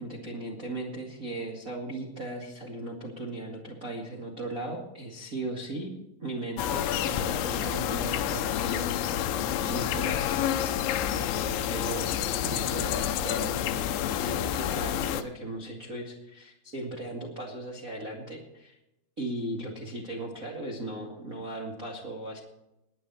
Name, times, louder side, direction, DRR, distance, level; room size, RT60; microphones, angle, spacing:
voice 1, 0.0-5.9 6.2-9.1 9.7-10.3 11.6-12.1 12.4-13.5 14.2-18.8 19.2-22.4, right 1 dB, 70° right, -3 dB, 0.8 m, -37 dB
sound 1, 6.6-15.2, left 10 dB, 85° left, 3.4 m, -29 dB
20.0 x 9.7 x 4.2 m, 0.88 s
omnidirectional pair, 5.7 m